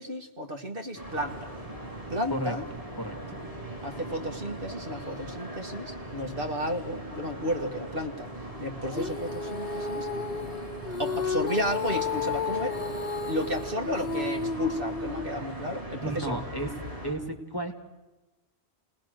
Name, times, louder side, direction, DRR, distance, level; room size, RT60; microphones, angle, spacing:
voice 1, 0.0-1.6 2.1-2.6 3.8-8.3 8.6-10.1 11.0-12.7 13.3-16.4, equal, 60° right, 4 dB, 2.0 m, -33 dB
sound 1, 0.9-17.1, right 1 dB, 35° right, 7.2 m, -39 dB
voice 2, 3.0-3.4 16.0-16.7 17.0-17.7, right 1 dB, 20° left, 4 dB, 2.3 m, -33 dB
Female singing, 8.9-15.4, left 5 dB, 40° left, 1.4 m, -33 dB
29.0 x 19.5 x 6.4 m, 1.1 s
omnidirectional pair, 1.1 m